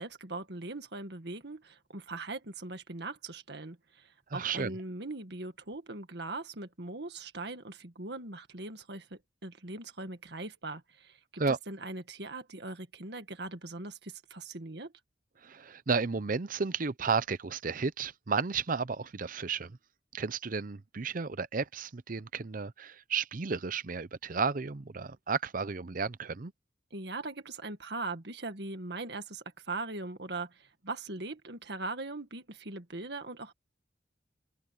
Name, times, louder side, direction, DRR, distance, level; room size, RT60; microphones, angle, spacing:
voice 1, 0.0-14.9 26.9-33.5, right 2 dB, 65° right, 2.0 m, -40 dB
voice 2, 4.3-4.7 11.4-11.6 15.4-19.7 20.1-26.5, right 5 dB, 50° right, 0.7 m, -33 dB
head